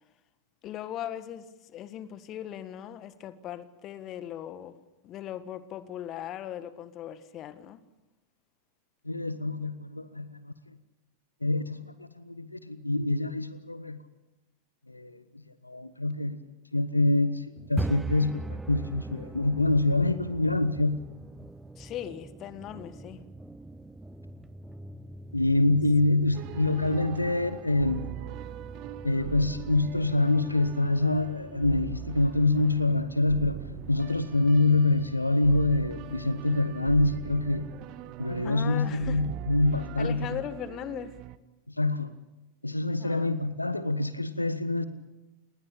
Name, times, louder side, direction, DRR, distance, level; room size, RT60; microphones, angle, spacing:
voice 1, 0.6-4.7 5.0-7.8 21.8-23.2 38.4-39.3 40.0-41.2 43.0-43.3, left 11 dB, 35° left, 1.6 m, -39 dB
voice 2, 9.0-10.5 11.4-14.0 14.9-15.2 15.6-16.4 16.7-17.4 17.7-21.0 25.3-28.0 29.0-33.6 33.9-37.7 38.2-40.4 41.8-42.1 42.6-44.8, left 2 dB, 85° left, 1.1 m, -26 dB
sound 1, 17.6-37.5, right 2 dB, 10° right, 0.8 m, -43 dB
sound 2, 26.3-41.4, right 13 dB, 40° right, 1.2 m, -41 dB
28.5 x 20.0 x 8.7 m
figure-of-eight pair, 90°, 0 cm